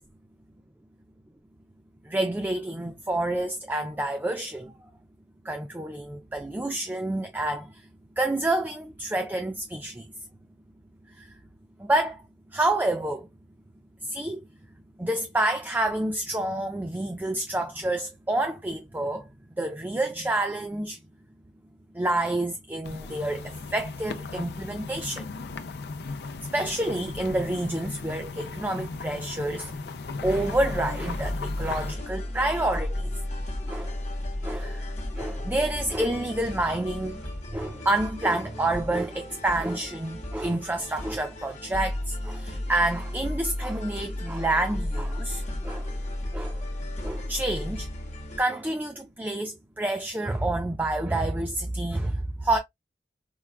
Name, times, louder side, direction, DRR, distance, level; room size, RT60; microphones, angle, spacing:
voice 1, 2.0-4.9 5.4-7.9 8.2-10.1 11.1-11.3 11.8-12.2 12.5-13.3 14.0-14.5 15.0-19.3 19.6-21.0 21.9-25.3 26.5-29.8 30.2-33.2 33.7-34.0 34.4-45.9 46.3-46.6 47.0-47.9 48.4-52.6, right 1 dB, 10° right, 0.3 m, -28 dB
sound 1, 22.8-31.9, left 3 dB, 65° left, 0.5 m, -37 dB
sound 2, 30.2-48.4, left 1 dB, 40° left, 0.9 m, -34 dB
4.6 x 2.3 x 2.3 m
head